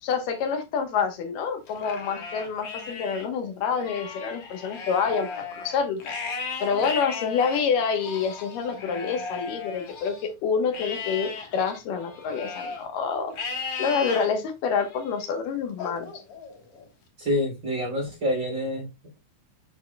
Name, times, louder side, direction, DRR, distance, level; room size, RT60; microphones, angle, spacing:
voice 1, 0.0-6.0 6.6-13.4 13.8-16.2, left 6 dB, 80° left, 2.7 m, -27 dB
Livestock farm animals working animals, 1.7-3.3 3.7-10.3 10.7-12.8 13.3-14.3 14.8-15.2 15.8-16.9, left 4 dB, 55° left, 2.0 m, -36 dB
voice 2, 17.2-18.9, equal, 25° right, 2.9 m, -27 dB
11.0 x 4.3 x 2.2 m
omnidirectional pair, 3.8 m